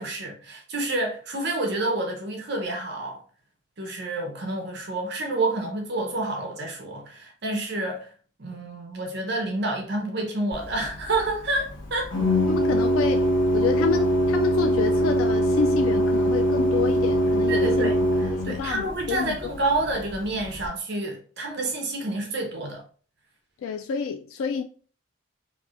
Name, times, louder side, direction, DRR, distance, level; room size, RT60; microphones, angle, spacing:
voice 1, 0.0-3.2 3.8-8.1 8.4-12.1 17.5-22.8, right 2 dB, 55° right, 0.8 m, -29 dB
Organ, 10.5-20.7, equal, 70° left, 1.3 m, -24 dB
voice 2, 12.2-19.5 23.6-24.6, left 6 dB, 85° left, 0.3 m, -29 dB
4.6 x 2.6 x 2.5 m
head